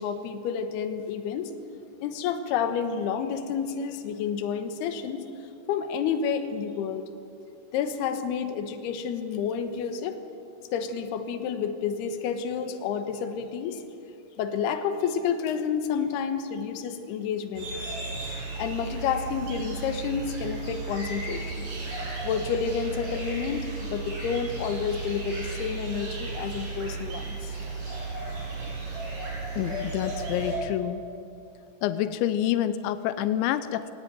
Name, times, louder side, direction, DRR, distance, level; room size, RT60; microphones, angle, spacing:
voice 1, 0.0-1.5 2.0-5.2 5.7-7.0 7.7-10.2 10.7-13.8 14.4-17.7 18.6-21.7 22.2-27.6, left 7 dB, 70° left, 7 dB, 3.1 m, -30 dB
sound 1, 17.6-30.6, right 3 dB, 50° right, 7.5 m, -34 dB
voice 2, 29.6-31.1 31.8-33.9, left 12 dB, 90° left, 12 dB, 3.1 m, -27 dB
19.5 x 18.0 x 9.2 m, 2.6 s
omnidirectional pair, 5.1 m